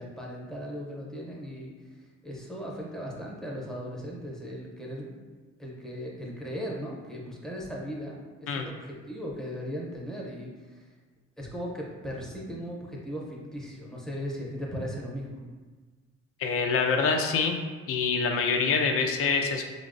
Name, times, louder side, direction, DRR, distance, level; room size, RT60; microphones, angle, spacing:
voice 1, 0.0-5.2 5.6-10.9 11.4-15.4, equal, ahead, -3 dB, 0.7 m, -38 dB
voice 2, 16.4-17.6 17.9-19.6, left 5 dB, 50° left, 4 dB, 0.4 m, -25 dB
4.3 x 2.0 x 2.5 m, 1.4 s
cardioid pair, 90°, 30 cm